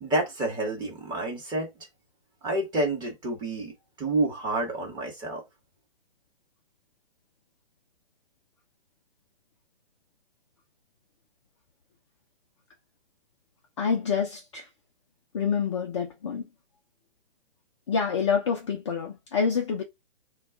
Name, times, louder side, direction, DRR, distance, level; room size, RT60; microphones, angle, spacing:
voice 1, 0.0-1.9 2.4-3.7 4.0-5.4, right 2 dB, 15° right, 1.0 m, -29 dB
voice 2, 13.8-14.7 15.3-16.5 17.9-19.8, left 6 dB, 30° left, 0.4 m, -27 dB
2.3 x 2.2 x 3.6 m
figure-of-eight pair, 130°, 32 cm